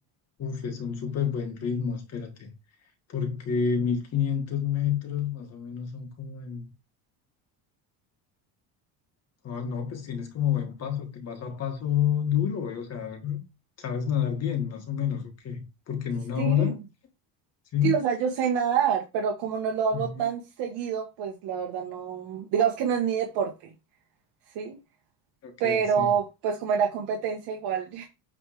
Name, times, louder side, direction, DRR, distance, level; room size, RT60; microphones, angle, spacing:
voice 1, 0.4-2.5 3.1-6.7 9.4-13.4 13.8-16.8 17.7-18.0 19.9-20.2 25.4-26.1, left 8 dB, 35° left, 1.5 m, -29 dB
voice 2, 16.4-16.7 17.8-23.5 24.6-24.8 25.6-28.1, right 7 dB, 70° right, 1.7 m, -27 dB
8.7 x 3.4 x 5.0 m
cardioid pair, 175°, 42 cm